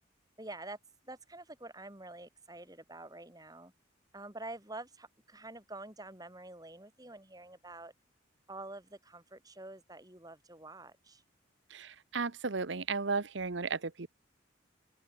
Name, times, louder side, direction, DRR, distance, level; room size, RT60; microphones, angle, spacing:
voice 1, 0.4-0.8 1.0-3.7 4.1-7.9 8.5-11.2, right 2 dB, 20° right, 5.3 m, -47 dB
voice 2, 11.7-14.1, right 4 dB, 65° right, 1.0 m, -34 dB
open air
head